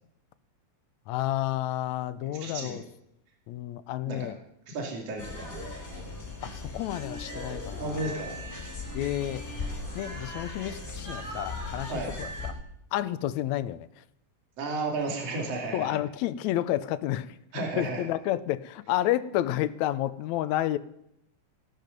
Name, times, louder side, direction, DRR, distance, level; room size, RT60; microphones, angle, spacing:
voice 1, 1.1-2.8 3.5-4.4 6.4-8.1 8.9-9.4 10.0-12.5 12.9-14.0 15.7-17.4 17.8-20.8, left 13 dB, 75° left, 15 dB, 1.9 m, -30 dB
voice 2, 2.3-2.8 4.1-4.3 4.7-5.5 7.8-8.4 11.9-12.1 14.6-16.0 17.5-18.0, right 2 dB, 55° right, 0 dB, 3.6 m, -33 dB
sound 1, 5.2-12.5, left 2 dB, 20° left, 3.9 m, -38 dB
sound 2, 5.4-6.3 7.3-8.4 9.3-10.3, right 1 dB, 35° right, 3.2 m, -47 dB
16.5 x 12.0 x 5.3 m, 0.79 s
omnidirectional pair, 3.5 m